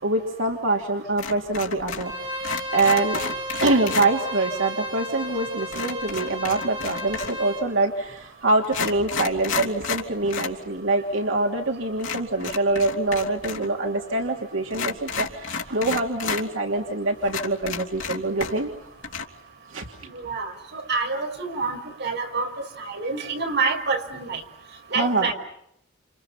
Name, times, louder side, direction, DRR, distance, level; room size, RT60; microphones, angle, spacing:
voice 1, 0.0-2.1 2.7-3.2 3.6-18.7 19.7-19.9 24.9-25.3, right 2 dB, 80° right, 1 dB, 2.8 m, -24 dB
sound 1, 1.2-2.1 2.4-4.1 5.7-7.5 8.2-8.3 8.6-10.6 10.9-11.0 12.0-13.7 13.9-14.0 14.7-16.4 16.9-17.0 17.3-18.8 19.0-19.2, left 6 dB, 80° left, 3.0 m, -31 dB
Bowed string instrument, 2.0-7.7, right 1 dB, 25° right, 5.4 m, -33 dB
voice 2, 20.0-22.5 22.8-24.4 24.9-25.3, right 4 dB, 60° right, 5 dB, 5.4 m, -27 dB
29.5 x 29.0 x 5.8 m, 0.74 s
head